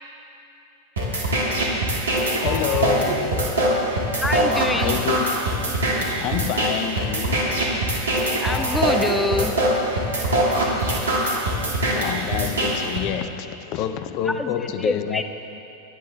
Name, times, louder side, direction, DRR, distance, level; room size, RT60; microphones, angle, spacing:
sound 1, 1.0-13.0, right 1 dB, 65° right, 2.2 m, -23 dB
voice 1, 2.4-3.5 4.7-5.3 6.2-7.6 11.9-15.2, left 10 dB, 40° left, 0.7 m, -28 dB
voice 2, 4.2-5.0 8.4-9.5 14.4-15.2, left 2 dB, 10° left, 0.5 m, -25 dB
25.0 x 10.5 x 3.6 m
figure-of-eight pair, 90°, 0 cm